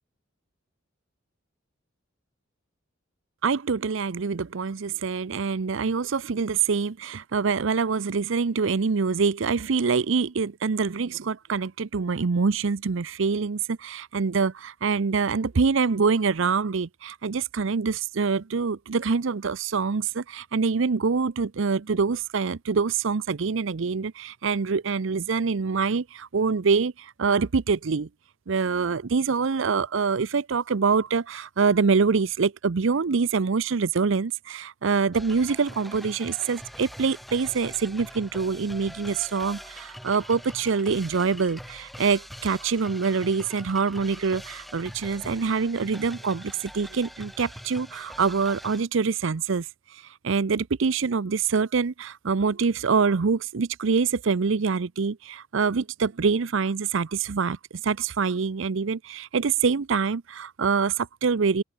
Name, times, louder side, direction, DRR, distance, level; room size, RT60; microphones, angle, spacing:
voice 1, 3.4-28.1 28.5-57.6 57.8-61.6, right 5 dB, 70° right, 0.6 m, -25 dB
sound 1, 35.1-48.8, equal, ahead, 5.9 m, -43 dB
open air
head